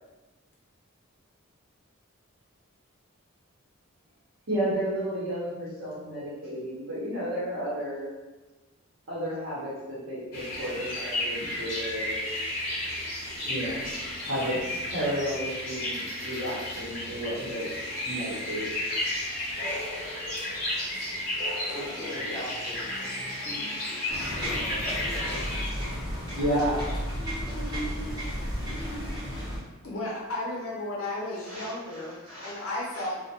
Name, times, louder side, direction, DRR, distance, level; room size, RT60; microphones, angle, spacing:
voice 1, 4.5-8.1 9.1-12.2 13.5-13.8 14.2-14.6 14.9-19.1 26.4-26.8 31.4-32.0 32.2-32.6 32.9-33.1, equal, 65° right, -9 dB, 0.8 m, -32 dB
sound 1, 10.3-25.7, left 1 dB, 40° left, 0.8 m, -33 dB
voice 2, 21.7-23.0 23.4-25.5, equal, 15° left, -4 dB, 0.4 m, -41 dB
sound 2, 24.1-29.6, equal, 20° right, 0.7 m, -33 dB
voice 3, 29.8-32.1 32.4-33.2, left 1 dB, 75° left, -4 dB, 0.6 m, -33 dB
2.2 x 2.1 x 2.8 m, 1.1 s
head